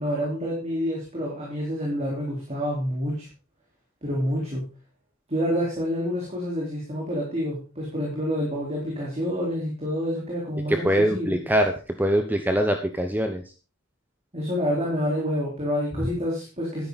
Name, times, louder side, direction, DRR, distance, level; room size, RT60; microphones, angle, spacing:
voice 1, 0.0-3.3 4.0-4.7 5.3-11.4 14.3-16.9, equal, 30° right, -3 dB, 4.3 m, -28 dB
voice 2, 10.7-13.4 16.0-16.1, equal, 10° right, 6 dB, 0.9 m, -23 dB
12.5 x 10.5 x 4.1 m, 0.34 s
head